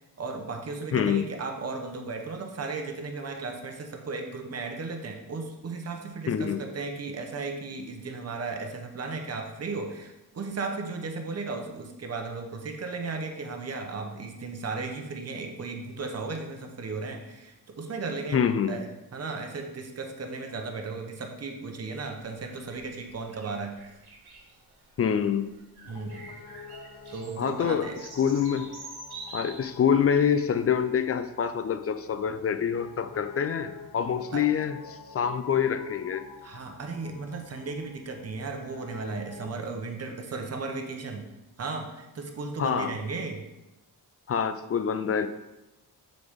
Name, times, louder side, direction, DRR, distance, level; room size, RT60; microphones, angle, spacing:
voice 1, 0.2-18.4 18.7-23.8 25.9-26.3 27.1-28.0 34.3-34.5 36.4-41.2 41.6-43.4, right 3 dB, 40° right, 4 dB, 0.9 m, -35 dB
voice 2, 0.9-1.2 6.3-6.7 18.3-18.8 25.0-25.5 27.4-27.9 28.2-28.7 29.3-36.3 42.6-42.9 44.3-45.3, left 7 dB, 40° left, 10 dB, 0.4 m, -26 dB
sound 1, 22.2-30.8, right 3 dB, 70° right, 1.4 m, -48 dB
Piano, 25.8-39.6, left 5 dB, 80° left, 0.7 m, -48 dB
6.7 x 4.0 x 3.5 m, 1.0 s
cardioid pair, 85°, 39 cm